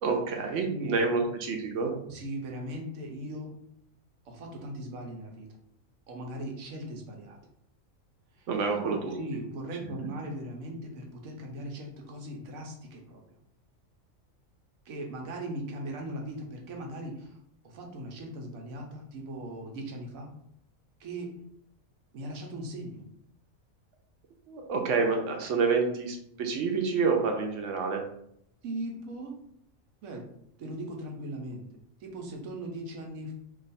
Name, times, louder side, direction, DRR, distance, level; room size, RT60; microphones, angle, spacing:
voice 1, 0.0-1.9 8.5-9.1 24.5-28.0, right 4 dB, 70° right, 3 dB, 1.0 m, -28 dB
voice 2, 0.6-1.0 2.1-3.5 4.3-5.5 6.1-7.4 8.6-13.2 14.9-17.3 17.6-20.3 21.0-21.3 22.1-23.0 28.6-29.4 30.0-30.2 30.6-31.7 32.0-33.3, right 1 dB, 90° right, 1 dB, 1.2 m, -39 dB
2.8 x 2.4 x 4.0 m, 0.71 s
omnidirectional pair, 1.4 m